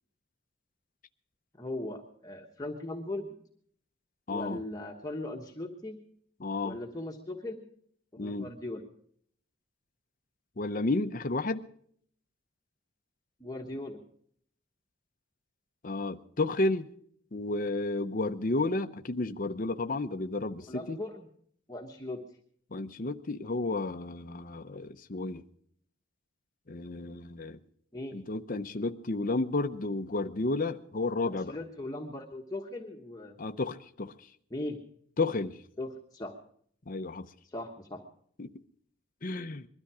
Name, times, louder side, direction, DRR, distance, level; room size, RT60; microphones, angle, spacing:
voice 1, 1.6-3.4 4.3-6.0 6.6-7.7 8.1-8.8 13.4-14.0 20.7-21.3 21.7-22.2 27.9-28.2 31.3-33.4 34.5-34.8 35.8-36.3 37.4-38.0, left 1 dB, 20° left, 1.2 m, -39 dB
voice 2, 4.3-4.6 6.4-6.8 8.2-8.5 10.6-11.6 15.8-16.9 17.3-21.0 22.7-25.4 26.7-27.6 28.1-31.6 33.4-34.1 35.2-35.6 36.9-37.3 38.4-38.5 39.2-39.7, left 2 dB, 40° left, 0.7 m, -32 dB
21.5 x 13.0 x 4.8 m
head